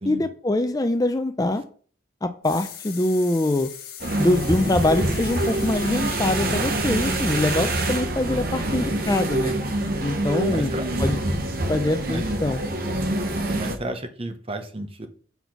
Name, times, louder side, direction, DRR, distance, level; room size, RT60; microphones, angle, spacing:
voice 1, 0.1-1.6 2.2-3.7 4.2-9.5 10.0-10.7 11.0-11.2 11.7-12.6, left 1 dB, 20° left, 9 dB, 0.5 m, -23 dB
sound 1, 2.4-8.0, left 9 dB, 50° left, 1.3 m, -40 dB
sound 2, 4.0-13.8, right 1 dB, 50° right, 1.1 m, -26 dB
voice 2, 10.4-10.9 12.0-12.2 13.4-15.1, right 1 dB, 30° right, 7 dB, 0.9 m, -32 dB
6.9 x 4.2 x 5.9 m, 0.44 s
head